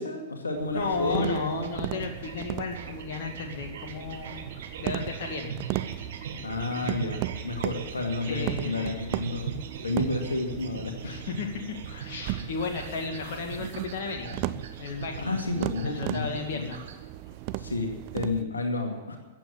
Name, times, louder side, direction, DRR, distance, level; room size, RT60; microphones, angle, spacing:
voice 1, 0.0-1.6 6.4-9.5 9.8-11.2 15.2-16.3 16.5-16.7 17.6-19.2, left 2 dB, 80° left, 3 dB, 2.3 m, -31 dB
sound 1, 0.5-18.4, right 14 dB, 45° right, 0.7 m, -37 dB
voice 2, 0.7-4.4 4.8-5.6 8.2-9.0 11.0-14.4 14.8-15.3 15.8-16.8, left 4 dB, 55° left, 3 dB, 2.1 m, -34 dB
sound 2, 1.1-17.0, right 7 dB, 60° right, 1.6 m, -41 dB
14.5 x 9.1 x 8.9 m, 1.3 s
figure-of-eight pair, 105°, 0 cm